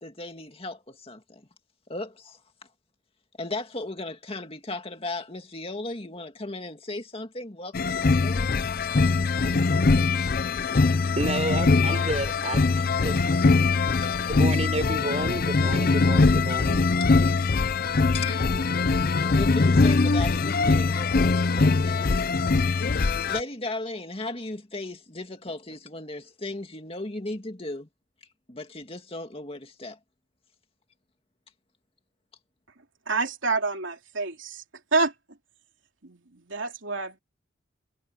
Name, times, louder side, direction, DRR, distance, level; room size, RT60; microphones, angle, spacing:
voice 1, 0.0-1.4 1.9-2.4 3.4-8.6 14.0-14.1 17.0-17.3 18.1-18.5 19.2-22.1 23.3-27.9 28.5-30.0, left 2 dB, 30° left, 2.4 m, -36 dB
sound 1, 7.7-23.4, left 3 dB, 50° left, 0.6 m, -22 dB
voice 2, 11.2-13.5 14.3-16.9, right 2 dB, 35° right, 6.0 m, -31 dB
voice 3, 33.1-34.6 34.9-35.1 36.0-37.2, right 3 dB, 85° right, 2.9 m, -28 dB
head